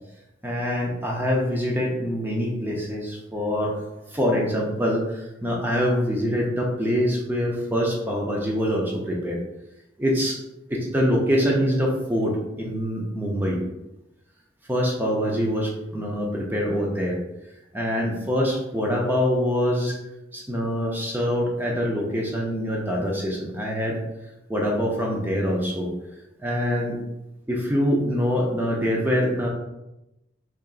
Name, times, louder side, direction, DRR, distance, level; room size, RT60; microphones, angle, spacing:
voice 1, 0.4-3.8 4.1-9.4 10.0-10.4 10.7-13.6 14.7-17.2 17.7-20.0 20.3-24.0 24.5-25.9 26.4-27.0 27.5-29.5, equal, 10° right, -2 dB, 0.5 m, -24 dB
3.7 x 3.4 x 2.4 m, 0.93 s
head